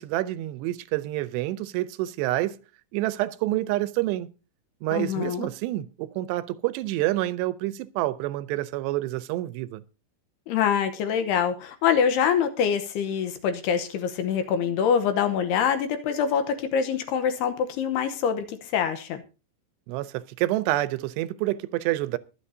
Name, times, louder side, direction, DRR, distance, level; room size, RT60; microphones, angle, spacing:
voice 1, 0.0-2.6 2.9-4.3 4.8-9.8 19.9-22.2, right 16 dB, 80° right, 2.7 m, -28 dB
voice 2, 4.9-5.5 10.5-19.2, left 7 dB, 75° left, 2.7 m, -25 dB
23.0 x 8.3 x 2.7 m
omnidirectional pair, 5.2 m